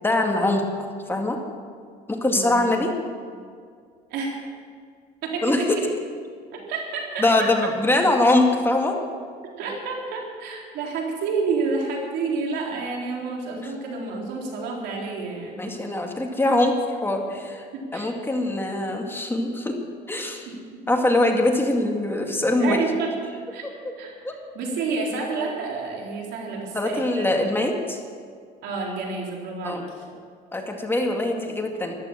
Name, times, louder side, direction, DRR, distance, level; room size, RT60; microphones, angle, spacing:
voice 1, 0.0-0.6 1.1-1.4 2.1-2.9 5.4-5.8 7.2-9.0 15.6-17.7 17.9-19.8 20.1-20.5 20.9-22.8 24.2-24.3 26.7-28.0 29.6-29.8 30.5-32.0, left 2 dB, 15° left, 2 dB, 2.1 m, -22 dB
voice 2, 2.3-2.7 4.1-4.4 5.2-5.7 6.5-7.5 9.6-15.7 17.7-18.1 20.5-20.8 22.6-23.1 23.5-23.6 24.0-24.3 24.5-27.3 28.6-30.1, right 4 dB, 85° right, -1 dB, 3.9 m, -29 dB
14.0 x 12.5 x 7.6 m, 2.1 s
cardioid pair, 110°, 17 cm